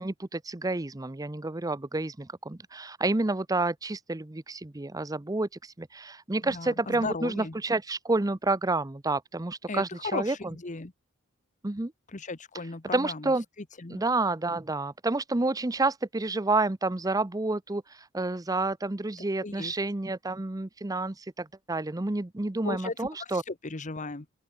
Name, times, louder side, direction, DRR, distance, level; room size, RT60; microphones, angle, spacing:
voice 1, 0.0-10.5 11.6-11.9 12.9-13.4 13.9-23.4, right 2 dB, 15° right, 0.6 m, -29 dB
voice 2, 6.4-7.5 9.7-10.9 12.1-13.3 13.8-14.0 19.4-19.7 22.6-24.3, left 3 dB, 35° left, 1.1 m, -36 dB
open air
head